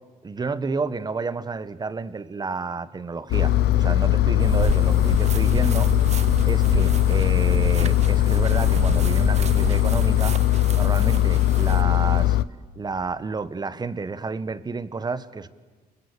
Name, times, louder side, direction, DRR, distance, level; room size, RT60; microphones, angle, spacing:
voice 1, 0.2-6.2 6.5-10.4 10.7-12.4 12.7-15.5, right 4 dB, 25° right, 1.4 m, -30 dB
Engine, 3.3-12.4, left 13 dB, 75° left, 0.9 m, -20 dB
sound 1, 4.4-11.8, right 7 dB, 40° right, 0.9 m, -31 dB
29.5 x 24.0 x 8.5 m
cardioid pair, 110°, 17 cm